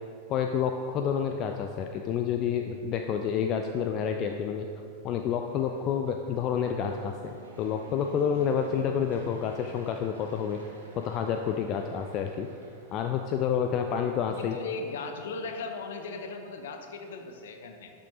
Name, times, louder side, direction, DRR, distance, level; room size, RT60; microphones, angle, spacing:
voice 1, 0.3-4.7 5.0-10.6 11.0-12.5 12.9-14.6, left 7 dB, 35° left, 5 dB, 0.4 m, -29 dB
Fixed-wing aircraft airplane, 3.1-14.1, right 2 dB, 70° right, 1.2 m, -50 dB
voice 2, 14.4-17.9, left 4 dB, 60° left, 5 dB, 0.8 m, -37 dB
11.5 x 6.3 x 2.8 m, 2.4 s
figure-of-eight pair, 90°, 0 cm